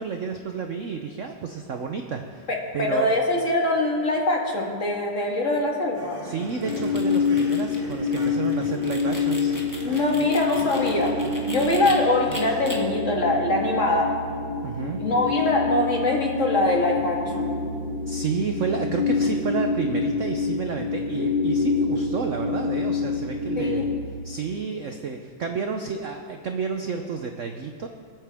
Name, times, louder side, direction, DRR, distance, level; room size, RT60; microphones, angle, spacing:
voice 1, 0.0-2.5 2.7-3.1 6.2-9.5 14.6-15.0 18.1-23.9 24.2-27.9, right 5 dB, 60° right, 4 dB, 0.8 m, -30 dB
voice 2, 2.5-6.2 9.8-11.2 11.5-14.1 15.0-17.5 23.6-23.9, left 2 dB, 40° left, -1 dB, 1.9 m, -23 dB
sound 1, 5.9-12.7, right 1 dB, 85° right, 3.5 m, -42 dB
sound 2, 6.4-11.9 12.3-12.8, left 1 dB, 10° left, 1.3 m, -39 dB
sound 3, 6.7-24.0, left 4 dB, 65° left, 4.2 m, -27 dB
26.5 x 9.0 x 3.5 m, 2.3 s
omnidirectional pair, 2.1 m